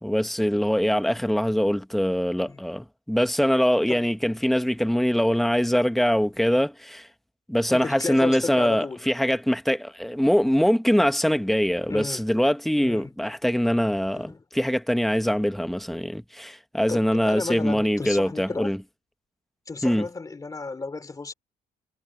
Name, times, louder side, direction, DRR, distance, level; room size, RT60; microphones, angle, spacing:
voice 1, 0.0-7.1 7.5-18.8 19.8-20.1, equal, ahead, 1.2 m, -23 dB
voice 2, 7.7-9.1 11.9-12.2 12.8-13.1 14.1-14.4 16.9-18.7 19.7-21.3, left 3 dB, 20° left, 3.2 m, -33 dB
cardioid pair, 110°, 17 cm